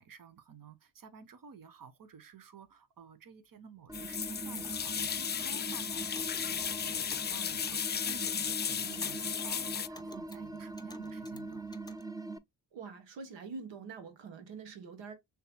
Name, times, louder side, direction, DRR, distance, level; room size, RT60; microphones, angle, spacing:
voice 1, 0.0-11.6, right 6 dB, 50° right, 1.1 m, -53 dB
sound 1, 3.9-9.9, left 8 dB, 25° left, 0.3 m, -35 dB
sound 2, 3.9-12.4, right 2 dB, 10° right, 0.6 m, -43 dB
Clock, 4.3-12.0, left 1 dB, 10° left, 1.0 m, -54 dB
voice 2, 12.7-15.1, right 5 dB, 80° right, 1.2 m, -45 dB
6.7 x 3.2 x 2.2 m
supercardioid pair, 45°, 44 cm